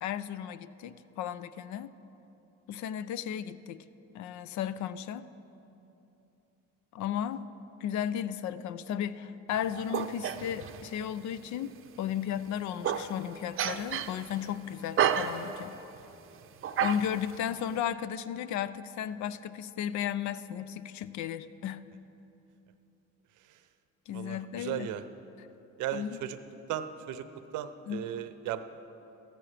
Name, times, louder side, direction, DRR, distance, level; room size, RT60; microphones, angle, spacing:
voice 1, 0.0-1.9 2.7-3.8 4.1-5.3 6.9-7.5 7.8-11.7 12.0-15.8 16.8-21.9 24.1-24.9 25.4-25.5 25.9-26.2 27.9-28.1, left 9 dB, 70° left, 15 dB, 0.5 m, -34 dB
sound 1, 9.5-11.1 11.3-11.4 12.0-12.1 12.6-13.3 13.6-14.5 15.0-16.0 16.6-17.4, right 8 dB, 45° right, 0.6 m, -31 dB
voice 2, 24.1-25.0 25.8-26.4 26.7-27.2 27.5-28.6, right 11 dB, 85° right, 11 dB, 0.7 m, -36 dB
14.5 x 13.5 x 3.3 m, 3.0 s
cardioid pair, 95°, 30 cm